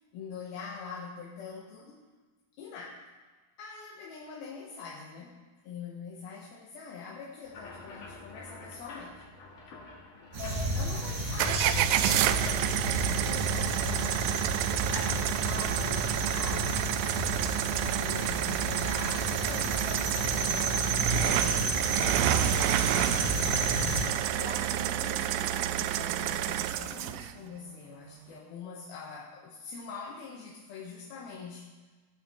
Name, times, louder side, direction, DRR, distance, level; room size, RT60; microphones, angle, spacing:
voice 1, 0.1-2.0 2.6-3.0 3.6-9.2 10.4-14.1 15.5-22.9 24.3-31.7, left 5 dB, 80° left, -3 dB, 3.0 m, -44 dB
sound 1, 7.4-15.4, left 3 dB, 60° left, 3.3 m, -47 dB
sound 2, 10.3-24.1, right 1 dB, 60° right, 3.1 m, -32 dB
sound 3, 11.4-27.3, right 12 dB, 80° right, 2.1 m, -29 dB
18.5 x 9.3 x 3.7 m, 1.3 s
omnidirectional pair, 4.2 m